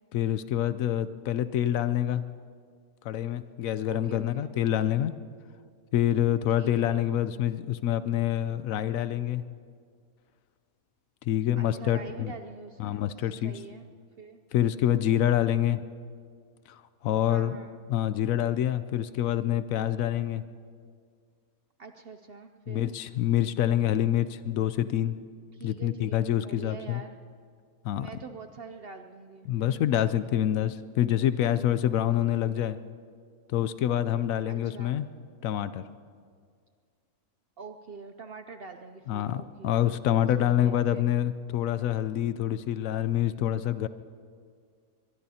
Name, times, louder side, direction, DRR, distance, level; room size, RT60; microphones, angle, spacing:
voice 1, 0.1-2.2 3.0-5.1 5.9-9.4 11.3-12.3 12.8-13.6 14.5-15.8 16.7-17.5 17.9-20.4 22.7-25.2 25.6-27.0 27.8-28.1 29.5-32.8 33.5-35.1 35.4-35.8 39.1-43.9, left 11 dB, 70° left, 13 dB, 0.9 m, -26 dB
voice 2, 3.8-4.5 6.6-7.2 11.6-13.0 13.4-13.9 14.2-14.4 17.3-17.8 21.8-22.9 25.5-27.2 27.9-29.9 34.5-35.0 37.6-39.9 40.4-41.0, right 4 dB, 60° right, 7 dB, 0.6 m, -45 dB
22.5 x 22.5 x 2.8 m, 2.1 s
omnidirectional pair, 1.6 m